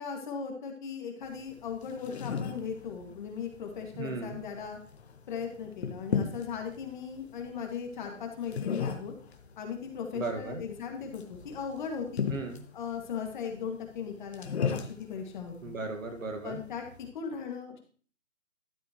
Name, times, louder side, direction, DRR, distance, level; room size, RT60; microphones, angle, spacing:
voice 1, 0.0-4.8 5.3-9.1 9.6-12.3 12.7-15.7 16.4-16.8 17.1-17.8, left 6 dB, 35° left, 3 dB, 2.1 m, -38 dB
sound 1, 1.2-17.1, left 6 dB, 55° left, 1.4 m, -38 dB
voice 2, 4.0-4.4 10.1-10.6 12.3-12.6 15.6-16.6, right 3 dB, 80° right, 5 dB, 2.0 m, -36 dB
12.5 x 8.1 x 3.1 m, 0.43 s
hypercardioid pair, 155°, 39 cm